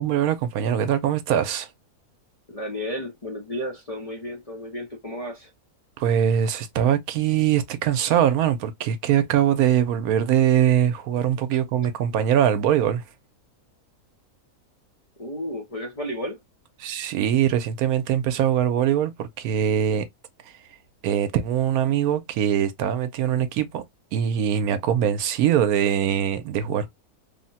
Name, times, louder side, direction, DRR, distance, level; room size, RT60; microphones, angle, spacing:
voice 1, 0.0-1.7 6.0-13.0 16.8-20.1 21.0-23.8 24.1-26.9, right 10 dB, 80° right, 1.1 m, -22 dB
voice 2, 2.5-5.5 11.5-11.6 15.2-16.4, equal, 40° left, 0.5 m, -33 dB
3.4 x 2.1 x 2.6 m
omnidirectional pair, 1.6 m